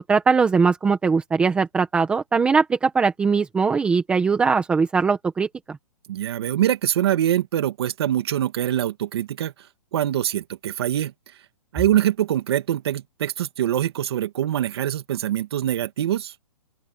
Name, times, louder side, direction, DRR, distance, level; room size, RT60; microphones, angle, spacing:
voice 1, 0.0-5.5, right 5 dB, 5° right, 1.4 m, -20 dB
voice 2, 6.1-9.5 9.9-11.1 11.7-16.3, right 11 dB, 40° right, 2.3 m, -24 dB
open air
hypercardioid pair, 170°, 19 cm